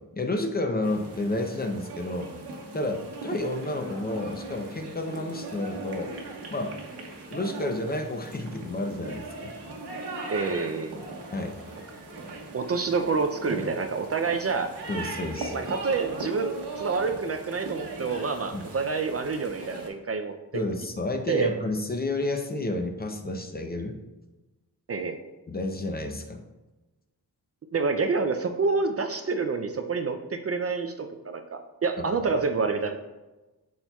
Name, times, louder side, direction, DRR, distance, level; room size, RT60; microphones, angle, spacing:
voice 1, 0.1-2.3 2.7-6.1 6.5-6.9 7.3-9.5 11.3-11.6 14.9-15.6 18.5-18.6 20.5-24.0 25.5-26.4 32.0-32.3, left 2 dB, 25° left, 4 dB, 0.5 m, -31 dB
sound 1, 0.8-19.9, right 2 dB, 80° right, 1.3 m, -39 dB
voice 2, 10.3-11.1 12.5-14.7 15.5-20.6 21.3-21.5 24.9-25.2 27.7-33.0, right 4 dB, 40° right, 6 dB, 0.4 m, -28 dB
12.0 x 4.3 x 2.3 m, 1.1 s
wide cardioid pair, 165°, 39 cm